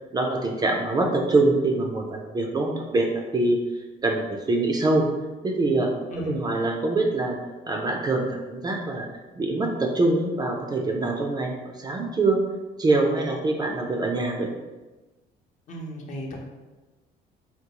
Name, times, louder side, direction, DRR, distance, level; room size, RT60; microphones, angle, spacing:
voice 1, 0.1-5.1 5.4-7.4 7.7-9.1 9.4-12.4 12.8-14.5, right 2 dB, 25° right, 2 dB, 0.4 m, -24 dB
voice 2, 15.7-16.4, equal, 50° left, 0 dB, 0.7 m, -35 dB
3.6 x 2.3 x 2.9 m, 1.2 s
cardioid pair, 110°, 17 cm